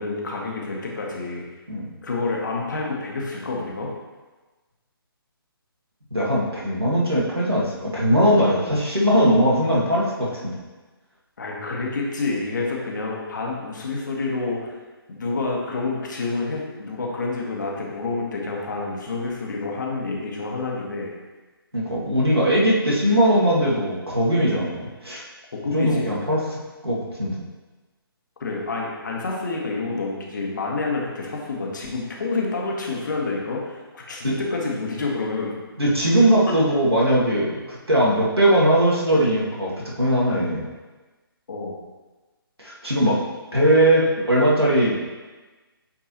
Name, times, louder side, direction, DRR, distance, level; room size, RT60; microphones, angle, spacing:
voice 1, 0.0-1.4 2.0-3.9 11.4-14.7 15.1-21.1 25.5-26.3 28.4-35.5 41.5-41.8, left 3 dB, 50° left, -2 dB, 1.5 m, -28 dB
voice 2, 6.1-10.5 21.7-25.2 25.7-26.4 26.8-27.4 34.2-34.4 35.8-40.6 42.6-43.2 43.5-45.0, equal, 85° right, -5 dB, 2.1 m, -20 dB
8.8 x 4.5 x 3.0 m, 1.2 s
figure-of-eight pair, 140°, 13 cm